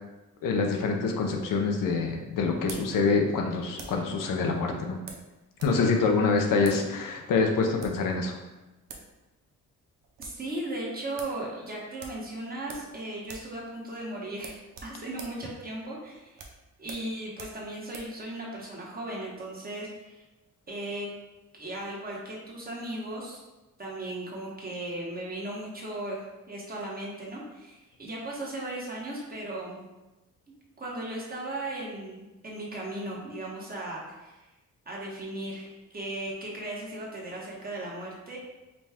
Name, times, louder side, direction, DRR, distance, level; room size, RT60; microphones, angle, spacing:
voice 1, 0.4-5.0 5.6-8.4, left 4 dB, 85° left, 2 dB, 0.7 m, -26 dB
sound 1, 1.2-4.1 5.1-5.8 6.1-6.2 6.6-6.9 7.6-8.1 8.6-8.7 8.9-9.1 9.4-9.5 9.8-10.4 10.8-10.9 11.2-11.4 12.0-13.0 13.2-13.6 13.8-14.0 14.4-18.2, right 4 dB, 85° right, 0.7 m, -46 dB
voice 2, 10.2-16.4 16.8-20.2 20.7-21.1 21.5-23.4 23.8-29.8 30.8-34.3 34.9-38.4, right 1 dB, 30° right, -4 dB, 1.1 m, -37 dB
5.0 x 2.3 x 3.4 m, 1.1 s
cardioid pair, 115°, 32 cm